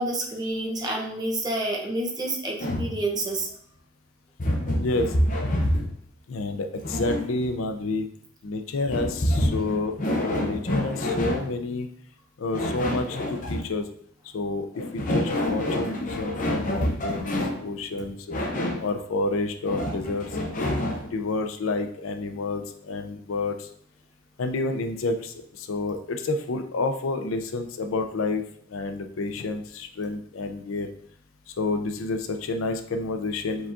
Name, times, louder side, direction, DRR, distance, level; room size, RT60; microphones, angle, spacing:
voice 1, 0.0-3.5, right 2 dB, 20° right, 0 dB, 0.7 m, -28 dB
sound 1, 2.6-3.0 4.4-6.0 6.8-7.5 8.9-11.5 12.5-13.7 14.7-17.6 18.3-18.9 19.7-21.1, left 1 dB, 40° left, 0.6 m, -27 dB
voice 2, 4.8-5.1 6.3-8.1 8.4-11.9 12.4-13.9 14.3-18.4 18.8-20.3 21.1-23.7 24.4-28.4 28.7-30.9 31.6-33.7, left 3 dB, 90° left, 6 dB, 0.5 m, -29 dB
4.9 x 3.5 x 2.5 m, 0.64 s
head